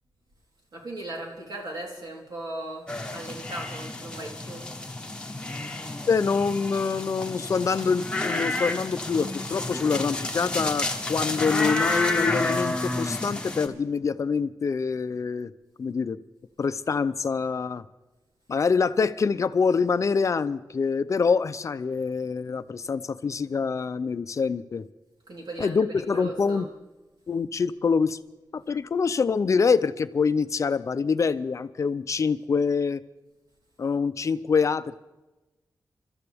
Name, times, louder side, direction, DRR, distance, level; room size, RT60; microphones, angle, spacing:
voice 1, 0.7-4.7 25.3-25.8 26.1-26.7, right 2 dB, 70° right, -1 dB, 3.6 m, -38 dB
sound 1, 2.9-13.7, left 2 dB, 15° left, 1.2 m, -30 dB
voice 2, 6.1-15.5 15.8-16.2 16.6-17.9 18.5-24.9 25.6-26.7 27.3-28.2 28.5-33.0 33.8-35.0, left 5 dB, 45° left, 13 dB, 0.5 m, -25 dB
29.0 x 13.0 x 3.5 m, 1.1 s
wide cardioid pair, 175°, 7 cm